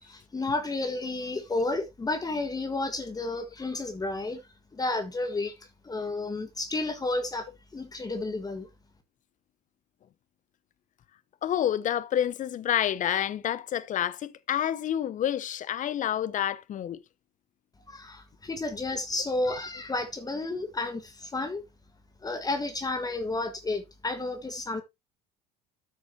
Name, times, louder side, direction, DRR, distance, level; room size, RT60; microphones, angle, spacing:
voice 1, 0.0-4.4 4.7-7.5 7.7-8.7 17.9-21.6 22.2-24.8, left 2 dB, 20° left, 1.6 m, -31 dB
voice 2, 11.4-17.0, left 10 dB, 40° left, 0.9 m, -28 dB
13.0 x 6.3 x 2.9 m
hypercardioid pair, 75°, 20 cm